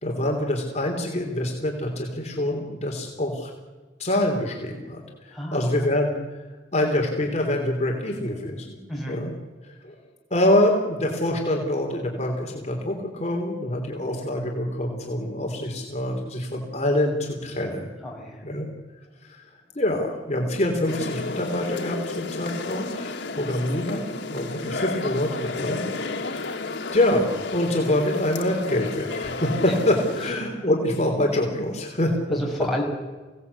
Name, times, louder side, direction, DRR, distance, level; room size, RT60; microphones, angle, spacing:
voice 1, 0.0-3.5 4.0-6.1 6.7-8.8 9.1-9.3 9.6-10.0 10.3-17.9 18.4-18.7 19.2-19.4 19.7-25.8 26.1-26.6 26.9-32.4, left 1 dB, 40° left, 1 dB, 3.2 m, -25 dB
voice 2, 5.3-5.9 8.9-9.2 18.0-18.4 29.6-29.8 32.3-32.8, equal, ahead, 0 dB, 5.9 m, -31 dB
sound 1, 20.9-30.3, left 3 dB, 85° left, 1.5 m, -32 dB
25.0 x 17.5 x 8.3 m, 1.3 s
head